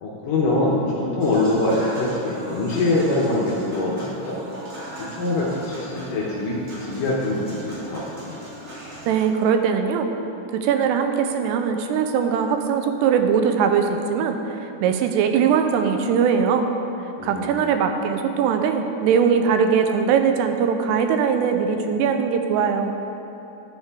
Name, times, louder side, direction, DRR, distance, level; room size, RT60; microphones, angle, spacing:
voice 1, 0.0-4.4 5.0-8.3 17.2-17.5, left 2 dB, 75° left, -4 dB, 2.1 m, -24 dB
Human voice / Acoustic guitar / Piano, 1.2-9.2, equal, 40° right, 1.9 m, -38 dB
voice 2, 9.1-10.1 10.5-14.4 14.8-16.7 17.2-22.9, right 7 dB, 85° right, 6 dB, 2.7 m, -21 dB
12.0 x 7.1 x 3.6 m, 2.9 s
omnidirectional pair, 4.8 m